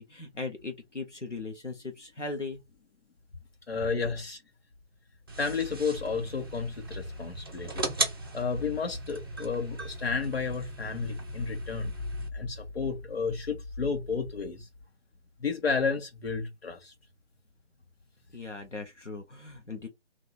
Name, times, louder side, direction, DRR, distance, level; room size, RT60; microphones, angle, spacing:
voice 1, 0.0-2.6 18.3-19.9, left 3 dB, 90° left, 1.2 m, -38 dB
voice 2, 3.7-4.4 5.4-7.8 8.3-11.9 12.3-14.7 15.4-16.9, left 5 dB, 60° left, 1.6 m, -32 dB
sound 1, 5.3-12.3, right 2 dB, 20° right, 0.6 m, -37 dB
3.6 x 2.9 x 4.3 m
figure-of-eight pair, 145°, 35 cm